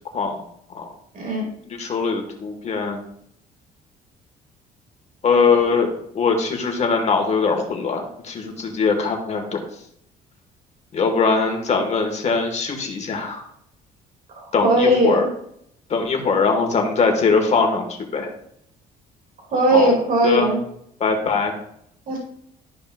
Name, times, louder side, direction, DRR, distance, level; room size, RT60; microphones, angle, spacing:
voice 1, 1.1-1.5 14.3-15.2 19.5-20.6 22.1-22.2, right 1 dB, 55° right, -2 dB, 2.5 m, -19 dB
voice 2, 1.6-3.0 5.2-9.6 10.9-13.4 14.5-15.3 15.9-18.3 19.7-20.0 20.2-20.5 21.0-21.6, left 4 dB, 40° left, 3 dB, 1.6 m, -21 dB
12.0 x 5.2 x 2.5 m, 0.71 s
cardioid pair, 110°, 17 cm